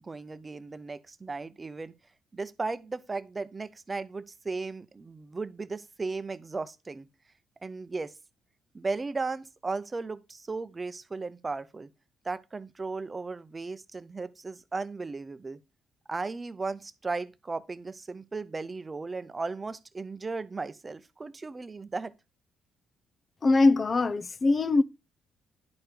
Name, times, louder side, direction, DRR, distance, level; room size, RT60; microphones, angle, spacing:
voice 1, 0.0-1.9 2.3-7.1 7.6-8.1 8.7-11.9 12.2-15.6 16.1-22.1, right 3 dB, 25° right, 0.7 m, -36 dB
voice 2, 23.4-24.8, left 3 dB, 35° left, 0.6 m, -22 dB
10.5 x 4.5 x 5.0 m
cardioid pair, 90°, 0 cm